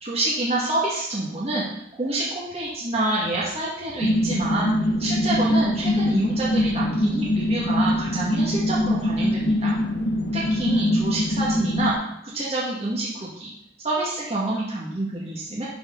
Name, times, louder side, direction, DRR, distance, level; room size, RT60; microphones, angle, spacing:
voice 1, 0.0-1.7 1.9-9.7 10.3-11.9 12.2-13.5 13.8-15.6, right 2 dB, 35° right, -7 dB, 1.7 m, -27 dB
sound 1, 4.0-11.9, left 1 dB, 85° left, 1.4 m, -23 dB
12.5 x 4.4 x 3.8 m, 0.78 s
head